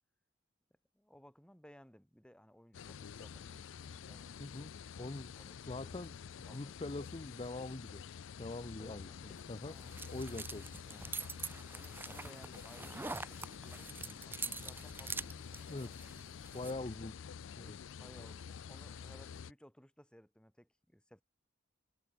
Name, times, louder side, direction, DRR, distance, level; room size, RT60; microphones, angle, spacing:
voice 1, 0.9-4.4 5.0-6.1 6.5-7.0 8.8-9.2 9.6-10.0 10.8-11.1 11.7-15.5 15.8-16.2 17.9-21.2, equal, 5° left, 5.1 m, -60 dB
sound 1, 2.7-19.5, left 7 dB, 65° left, 0.4 m, -49 dB
voice 2, 4.4-5.4 5.7-6.1 6.5-8.0 8.4-9.1 9.5-9.8 10.1-10.7 15.7-15.9 16.5-17.1 17.6-17.8, left 2 dB, 30° left, 0.7 m, -43 dB
sound 2, 9.3-16.7, right 3 dB, 10° right, 0.8 m, -45 dB
head